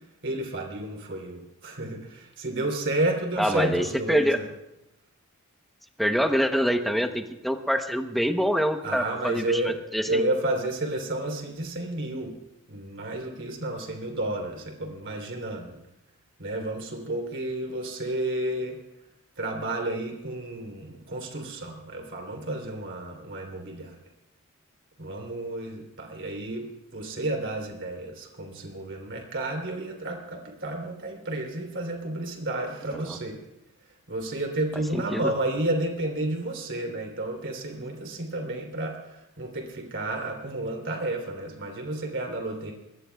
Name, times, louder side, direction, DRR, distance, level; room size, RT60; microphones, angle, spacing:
voice 1, 0.2-4.5 8.8-9.7 10.0-12.3 12.7-15.8 16.4-18.8 19.4-24.0 25.0-33.4 34.1-42.7, right 1 dB, 55° right, 2 dB, 3.3 m, -31 dB
voice 2, 3.4-4.4 6.0-10.2 32.9-33.2 34.9-35.3, equal, ahead, 6 dB, 0.9 m, -25 dB
25.0 x 20.5 x 2.3 m, 0.91 s
head